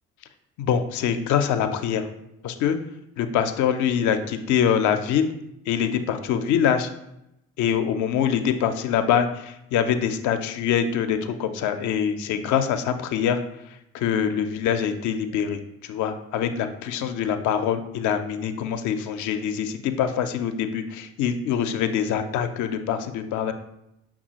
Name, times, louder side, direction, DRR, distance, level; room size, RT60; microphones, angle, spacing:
voice 1, 0.6-2.0 2.4-2.8 3.2-5.3 5.7-6.9 7.6-13.4 13.9-23.5, left 8 dB, 55° left, 9 dB, 0.5 m, -24 dB
5.4 x 2.3 x 2.8 m, 0.83 s
figure-of-eight pair, 45°, 36 cm